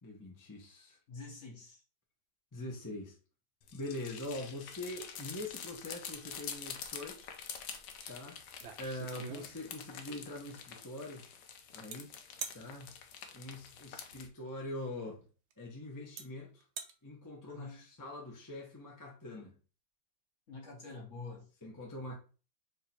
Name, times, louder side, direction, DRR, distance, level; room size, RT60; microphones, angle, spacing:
voice 1, 0.0-1.0 2.5-3.2 3.7-7.3 8.1-8.4 8.8-11.2 11.7-12.1 12.5-12.9 13.3-15.2 15.6-16.6 17.0-19.6 21.6-22.2, left 1 dB, 20° left, 0.5 m, -43 dB
voice 2, 1.1-1.8 17.5-17.8 20.5-21.5, left 3 dB, 45° left, 1.4 m, -47 dB
sound 1, 3.6-14.3, left 7 dB, 70° left, 1.3 m, -47 dB
sound 2, 8.0-8.1 8.5-9.9 11.9-12.0 12.4-12.6 14.5-14.6 15.5-15.6 16.2-16.3 16.6-16.9, right 7 dB, 90° right, 1.5 m, -43 dB
3.8 x 2.9 x 4.2 m
omnidirectional pair, 2.1 m